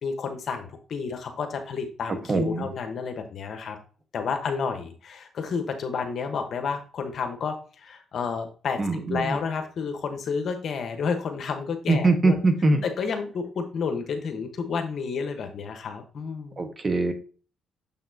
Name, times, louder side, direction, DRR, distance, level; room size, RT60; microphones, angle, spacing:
voice 1, 0.0-3.8 4.1-12.4 12.8-16.6, left 5 dB, 60° left, 5 dB, 1.2 m, -30 dB
voice 2, 2.3-2.7 8.8-9.4 11.9-12.8 16.6-17.1, right 2 dB, 30° right, 6 dB, 1.4 m, -22 dB
7.0 x 5.7 x 2.8 m, 0.38 s
cardioid pair, 90°, 0 cm